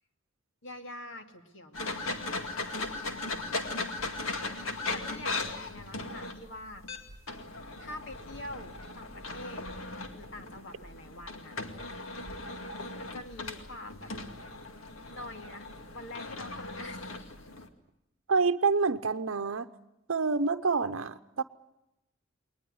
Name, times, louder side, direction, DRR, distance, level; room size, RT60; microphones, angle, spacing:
voice 1, 0.6-2.4 3.0-3.6 4.7-6.8 7.8-9.7 10.1-11.6 13.0-14.1 15.1-17.5, left 1 dB, 65° left, 5 dB, 2.2 m, -45 dB
sound 1, 1.7-17.7, left 2 dB, 85° left, 2.2 m, -38 dB
voice 2, 18.3-19.7 20.1-21.4, right 4 dB, 80° right, 9 dB, 0.8 m, -27 dB
21.5 x 19.5 x 9.6 m, 0.89 s
head